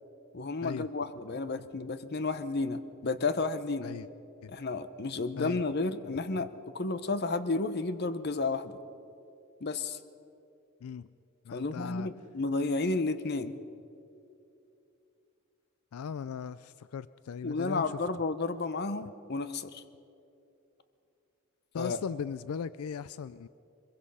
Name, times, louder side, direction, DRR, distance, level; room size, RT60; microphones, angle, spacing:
voice 1, 0.3-3.9 4.5-6.5 6.7-8.7 9.6-10.0 11.5-13.6 17.4-19.8 21.8-22.0, left 3 dB, 50° left, 12 dB, 0.8 m, -32 dB
voice 2, 11.4-12.1 15.9-18.0 21.7-23.5, left 7 dB, 90° left, 17 dB, 0.4 m, -38 dB
23.0 x 22.0 x 5.6 m, 2.7 s
head